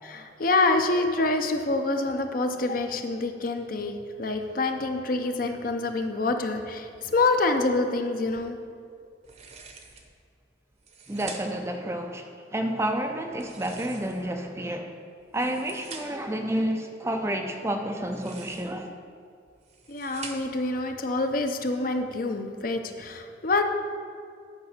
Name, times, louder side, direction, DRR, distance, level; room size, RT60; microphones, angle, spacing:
voice 1, 0.0-8.6 19.9-23.6, left 2 dB, 45° left, 6 dB, 0.6 m, -26 dB
sound 1, 9.2-10.1 10.7-11.7 13.3-14.4 15.2-16.3 18.0-18.9 19.5-20.7, right 4 dB, 35° right, 0.8 m, -45 dB
voice 2, 11.1-15.0 15.3-18.9, right 1 dB, 15° right, 4 dB, 0.4 m, -30 dB
9.6 x 5.2 x 6.6 m, 2.3 s
head